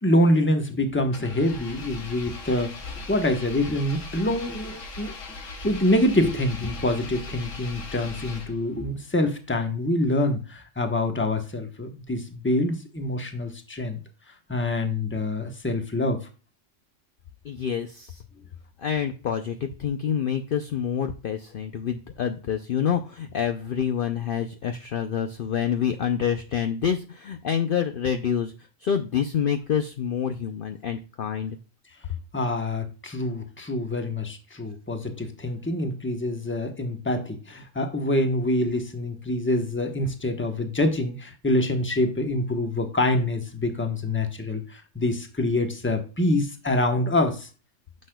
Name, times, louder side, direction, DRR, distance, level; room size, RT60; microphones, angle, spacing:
voice 1, 0.0-14.0 14.5-16.2 32.3-47.5, left 1 dB, 10° left, 5 dB, 0.9 m, -26 dB
Engine, 1.1-8.8, left 2 dB, 85° left, 1.7 m, -39 dB
voice 2, 17.4-18.2 18.8-28.5 28.8-31.6, left 8 dB, 55° left, 7 dB, 0.7 m, -27 dB
9.7 x 6.4 x 2.2 m, 0.34 s
omnidirectional pair, 1.3 m